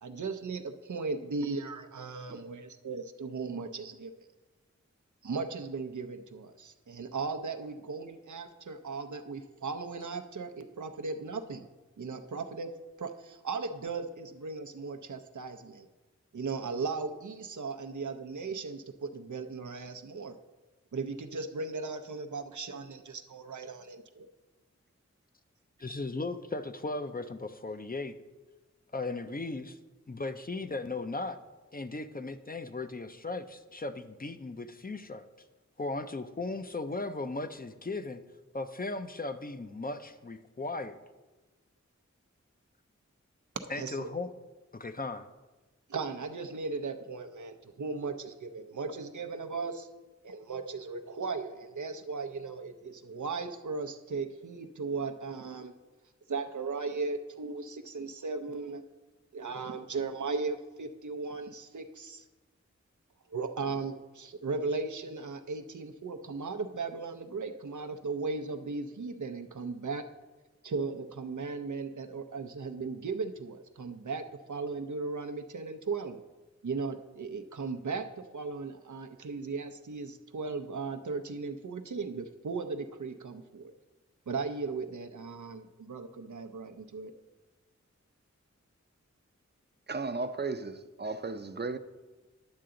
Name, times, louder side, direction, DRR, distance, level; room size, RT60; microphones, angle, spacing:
voice 1, 0.0-4.3 5.2-11.7 12.0-12.7 13.0-15.9 16.3-20.4 20.9-24.3 43.7-44.1 45.9-49.9 50.2-55.7 56.3-58.8 59.3-62.2 63.3-70.0 70.6-74.2 74.5-76.2 76.6-78.1 78.3-83.7 84.3-87.1, right 4 dB, 85° right, 0.6 m, -37 dB
voice 2, 25.8-28.2 28.9-29.8 30.1-31.4 31.7-35.2 35.8-38.2 38.5-41.0 43.7-44.3 44.7-45.3, left 3 dB, 30° left, 0.5 m, -37 dB
voice 3, 89.9-91.8, right 3 dB, 35° right, 0.5 m, -35 dB
10.5 x 6.7 x 3.8 m
wide cardioid pair, 40°, 29 cm